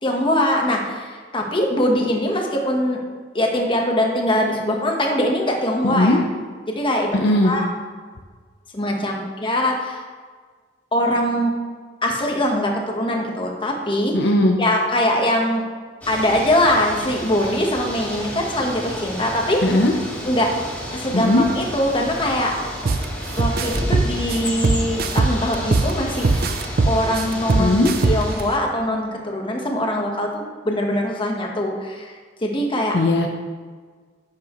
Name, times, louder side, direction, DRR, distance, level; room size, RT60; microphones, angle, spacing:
voice 1, 0.0-3.0 3.3-6.2 6.7-7.7 8.7-10.0 10.9-11.5 12.0-14.3 14.6-15.6 16.1-19.6 20.2-20.5 20.9-22.5 23.4-26.6 26.8-32.1 32.4-33.0, left 1 dB, 25° left, 1 dB, 1.3 m, -22 dB
voice 2, 5.8-6.2 7.1-7.5 14.1-14.6 19.6-19.9 21.1-21.5 27.6-27.9 32.9-33.3, left 1 dB, 65° left, 2 dB, 0.8 m, -17 dB
sound 1, 16.0-28.4, equal, 10° left, 2.5 m, -32 dB
sound 2, 22.9-23.0 23.4-25.9 26.2-28.4, right 3 dB, 55° right, 0.5 m, -19 dB
10.5 x 7.4 x 3.1 m, 1.5 s
head